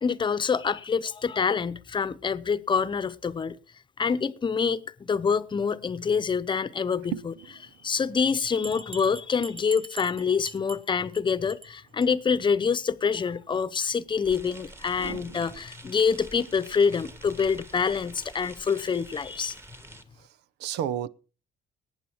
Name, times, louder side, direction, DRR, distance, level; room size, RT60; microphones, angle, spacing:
voice 1, 0.0-3.6 4.0-7.3 7.8-19.6, left 6 dB, 30° left, 0.9 m, -26 dB
voice 2, 7.1-7.7 15.0-15.4 20.2-21.1, right 10 dB, 85° right, 0.9 m, -34 dB
Bell, 8.5-11.2 11.5-11.7 12.0-12.1 12.4-12.5 12.8-12.9, right 3 dB, 30° right, 1.0 m, -43 dB
sound 1, 14.2-20.0, right 1 dB, 15° right, 1.7 m, -47 dB
19.0 x 8.9 x 4.6 m
cardioid pair, 110°, 17 cm